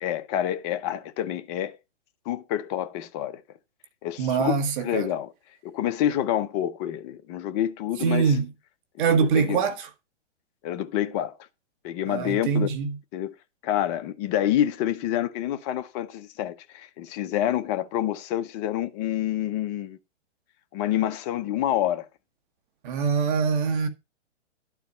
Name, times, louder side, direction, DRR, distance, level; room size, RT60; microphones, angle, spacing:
voice 1, 0.0-1.8 2.3-3.4 4.0-4.5 4.8-5.3 5.6-8.3 9.1-9.6 10.6-11.4 11.8-12.7 13.1-13.3 13.6-20.0 20.7-22.1, left 11 dB, 25° left, 0.7 m, -27 dB
voice 2, 4.2-5.1 8.0-8.5 9.0-9.9 12.1-13.0 22.8-23.9, right 6 dB, 45° right, 1.8 m, -24 dB
11.5 x 4.7 x 5.6 m
hypercardioid pair, 140°, 36 cm